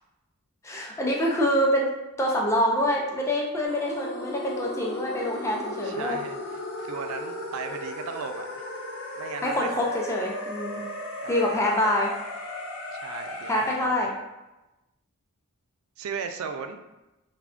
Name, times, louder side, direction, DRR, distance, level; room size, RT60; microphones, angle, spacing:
voice 1, 0.6-1.9 2.2-6.2 9.4-10.8 11.3-12.1 13.5-14.1, equal, 15° left, -2 dB, 0.4 m, -25 dB
sound 1, 3.6-13.8, left 1 dB, 80° left, 0.8 m, -36 dB
voice 2, 5.8-6.4 6.8-8.7 9.2-9.9 11.2-11.6 12.9-14.1 16.0-16.8, right 5 dB, 70° right, 6 dB, 0.3 m, -36 dB
3.4 x 2.1 x 2.4 m, 0.99 s
head